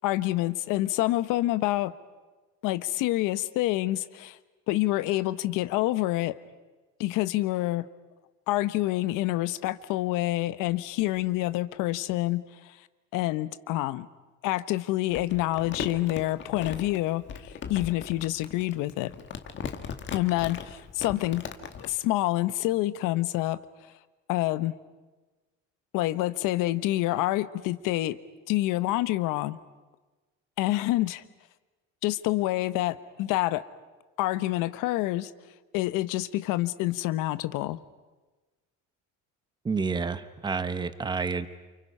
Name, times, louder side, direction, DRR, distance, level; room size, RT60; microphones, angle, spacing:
voice 1, 0.0-1.9 2.6-4.4 4.7-6.3 7.0-7.9 8.5-12.7 13.1-14.1 14.4-19.1 20.1-21.4 21.8-23.6 24.3-24.7 25.9-28.2 28.5-29.6 30.6-31.2 32.0-33.6 34.2-35.3 35.7-37.8, left 17 dB, 80° left, 14 dB, 1.1 m, -27 dB
Crumpling crinkling, 15.1-21.9, left 7 dB, 35° left, 1.7 m, -38 dB
voice 2, 39.6-41.5, right 5 dB, 15° right, 12 dB, 0.8 m, -29 dB
29.0 x 28.5 x 5.6 m, 1.2 s
cardioid pair, 175°, 32 cm